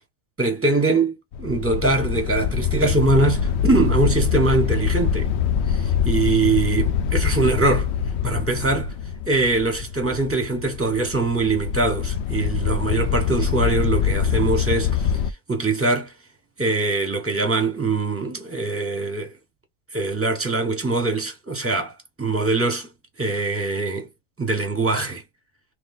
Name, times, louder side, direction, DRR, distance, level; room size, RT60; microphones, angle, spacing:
voice 1, 0.4-5.3 5.7-7.9 8.2-8.9 9.3-15.2 15.5-16.1 16.6-19.3 19.9-22.9 23.2-24.1 24.4-25.2, right 3 dB, 10° right, 0.8 m, -22 dB
sound 1, 1.3-15.3, left 7 dB, 85° left, 0.5 m, -24 dB
3.1 x 2.7 x 3.9 m
omnidirectional pair, 1.7 m